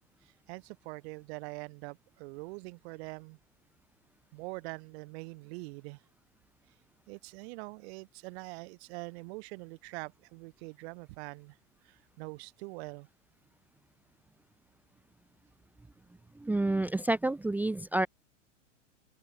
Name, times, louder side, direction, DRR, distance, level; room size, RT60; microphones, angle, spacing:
voice 1, 0.2-3.4 4.3-6.0 7.1-11.6 11.8-13.1, right 26 dB, 50° right, 6.9 m, -44 dB
voice 2, 16.3-18.1, right 2 dB, 5° right, 0.9 m, -29 dB
hypercardioid pair, 115°, 39 cm